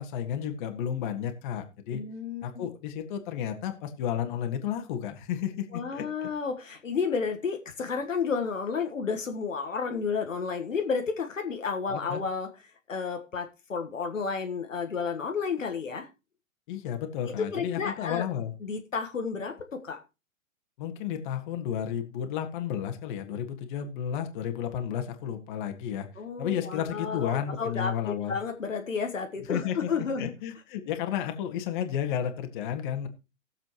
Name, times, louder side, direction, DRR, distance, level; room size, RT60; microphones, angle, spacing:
voice 1, 0.0-2.0 2.4-6.3 11.9-12.2 16.7-18.5 20.8-26.1 26.4-28.4 29.5-33.1, left 9 dB, 40° left, 6 dB, 2.0 m, -32 dB
voice 2, 1.9-2.7 5.7-12.5 12.9-16.1 17.2-18.2 18.6-20.0 26.2-30.3, left 5 dB, 75° left, 5 dB, 1.5 m, -31 dB
18.5 x 7.5 x 3.0 m, 0.27 s
figure-of-eight pair, 120°, 39 cm